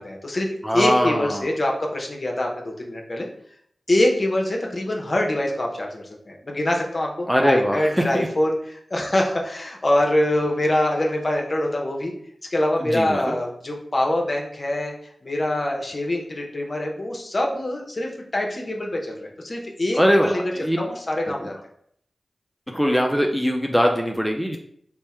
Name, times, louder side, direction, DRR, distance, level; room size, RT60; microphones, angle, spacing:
voice 1, 0.0-3.3 3.9-12.1 12.5-14.9 15.2-21.5, left 1 dB, 45° left, 0 dB, 0.8 m, -24 dB
voice 2, 0.6-1.5 7.3-8.3 12.8-13.3 19.9-20.8 22.7-24.6, equal, ahead, 1 dB, 0.4 m, -21 dB
3.4 x 2.1 x 4.3 m, 0.68 s
cardioid pair, 50°, 0 cm